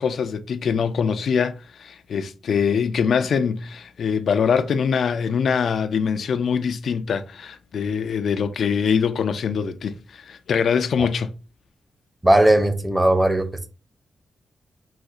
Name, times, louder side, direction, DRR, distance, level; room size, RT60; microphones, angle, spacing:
voice 1, 0.0-11.3, left 6 dB, 75° left, 0.3 m, -23 dB
voice 2, 12.2-13.7, right 1 dB, 15° right, 0.6 m, -18 dB
4.0 x 2.4 x 2.4 m
wide cardioid pair, 105°, 0 cm